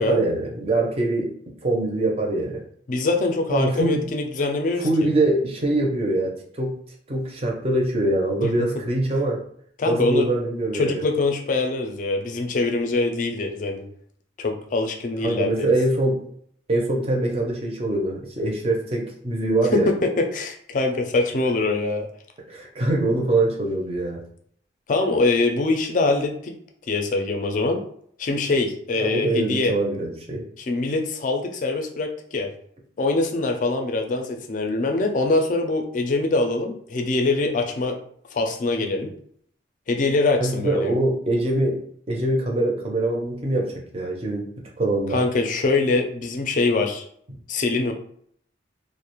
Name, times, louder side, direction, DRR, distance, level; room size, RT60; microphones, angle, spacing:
voice 1, 0.0-1.3 1.6-2.6 3.5-4.1 4.8-6.7 7.1-9.4 9.9-11.0 15.2-16.2 16.7-19.9 22.5-24.2 29.0-30.4 40.4-44.5 44.8-45.3, right 2 dB, 30° right, 0 dB, 0.5 m, -23 dB
voice 2, 2.9-4.9 8.4-8.7 9.8-10.3 10.7-13.8 14.4-15.7 19.7-22.1 24.9-26.6 26.9-27.8 28.2-29.7 30.6-32.5 33.0-38.0 38.3-39.1 39.9-40.9 45.1-47.0 47.5-47.9, left 3 dB, 45° left, 3 dB, 0.4 m, -23 dB
2.3 x 2.0 x 2.9 m, 0.63 s
head